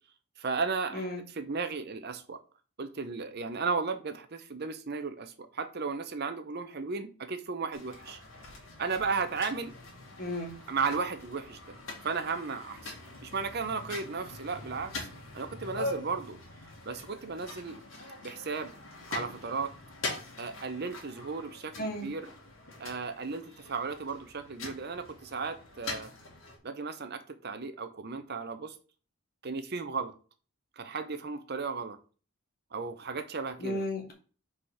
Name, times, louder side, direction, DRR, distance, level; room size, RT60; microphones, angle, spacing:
voice 1, 0.4-2.4 2.8-8.2 8.8-9.7 10.7-11.6 12.0-12.9 13.2-15.1 15.3-16.4 16.9-17.8 18.2-18.7 19.1-19.7 20.4-22.3 22.8-26.1 26.6-28.7 29.4-30.1 30.8-32.0 32.7-33.8, right 4 dB, 50° right, 9 dB, 0.7 m, -35 dB
sound 1, 7.7-26.6, left 2 dB, 60° left, 2.6 m, -43 dB
voice 2, 10.2-10.5 21.8-22.1 33.6-34.1, left 1 dB, 40° left, 1 dB, 2.3 m, -34 dB
5.0 x 4.9 x 5.7 m, 0.37 s
head